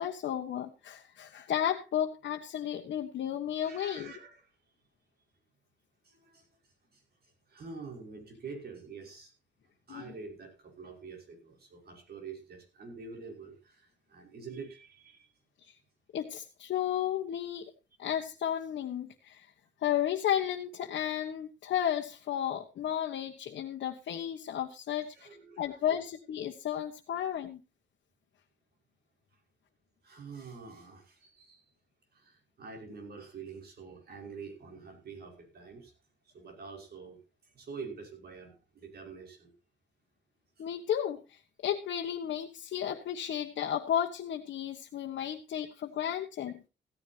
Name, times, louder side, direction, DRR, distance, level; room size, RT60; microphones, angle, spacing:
voice 1, 0.0-4.1 9.9-10.0 15.6-15.7 16.1-17.7 18.0-19.4 19.8-25.3 25.6-27.6 40.6-46.7, left 10 dB, 90° left, 1 dB, 1.4 m, -33 dB
voice 2, 3.6-4.4 6.0-6.4 6.9-7.0 7.5-9.3 9.9-15.3 25.1-25.8 30.0-31.6 32.1-35.9 36.3-37.2 37.4-39.5 40.6-40.7, right 5 dB, 60° right, 3 dB, 5.5 m, -46 dB
16.0 x 14.0 x 2.9 m, 0.29 s
wide cardioid pair, 140°, 18 cm